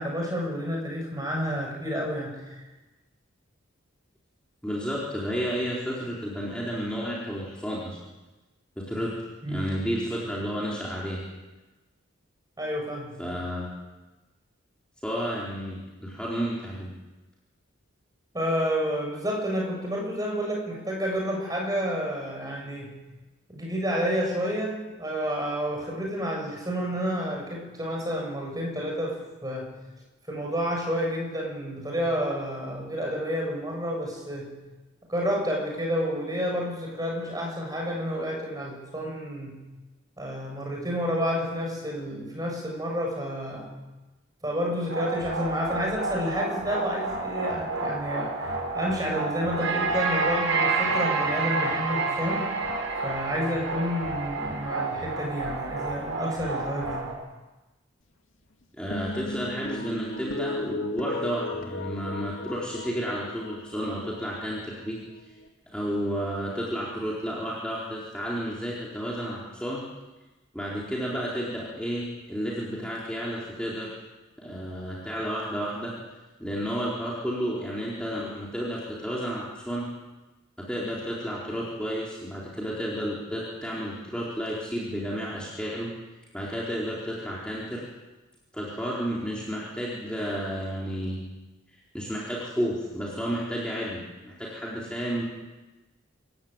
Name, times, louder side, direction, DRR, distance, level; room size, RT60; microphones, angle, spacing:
voice 1, 0.0-2.6 9.4-9.7 12.6-13.1 18.3-23.0 23.5-29.7 30.3-34.6 35.1-39.6 40.2-43.8 44.4-52.5 53.0-57.1, equal, 20° right, 0 dB, 6.8 m, -30 dB
voice 2, 4.6-8.0 8.8-9.1 9.5-11.2 13.2-13.7 15.0-16.9 58.8-65.0 65.7-69.8 70.5-73.9 74.4-75.9 76.4-79.9 80.6-85.9 86.3-87.8 88.5-91.2 91.9-95.2, equal, 5° left, -6 dB, 4.3 m, -31 dB
sound 1, 44.9-57.1, right 3 dB, 70° right, 6.0 m, -29 dB
sound 2, 58.9-65.5, left 2 dB, 75° left, 2.3 m, -36 dB
27.5 x 15.0 x 9.1 m, 1.1 s
head